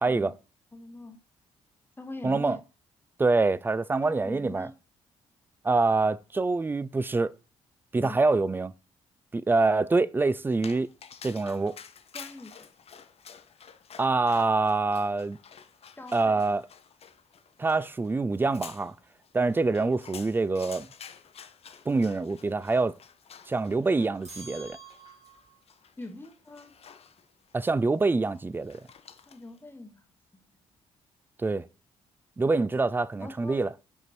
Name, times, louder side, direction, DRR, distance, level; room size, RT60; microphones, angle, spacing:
voice 1, 0.0-0.3 2.2-2.6 3.2-4.7 5.6-7.4 7.9-8.7 9.3-10.9 11.2-11.8 14.0-15.4 16.1-16.6 17.6-18.9 19.3-20.9 21.9-23.0 23.5-24.8 27.5-28.9 31.4-31.7 32.4-33.7, right 3 dB, 15° right, 0.3 m, -25 dB
voice 2, 0.7-1.2 2.0-2.6 4.0-4.7 8.0-8.4 12.1-12.7 16.0-16.4 26.0-26.8 29.3-30.1 30.3-30.4 33.2-33.6, left 2 dB, 15° left, 1.1 m, -43 dB
Dog, 10.5-29.6, left 7 dB, 40° left, 0.7 m, -50 dB
sound 1, 24.2-25.6, right 3 dB, 40° right, 2.2 m, -47 dB
5.3 x 4.5 x 4.1 m
figure-of-eight pair, 40°, 16 cm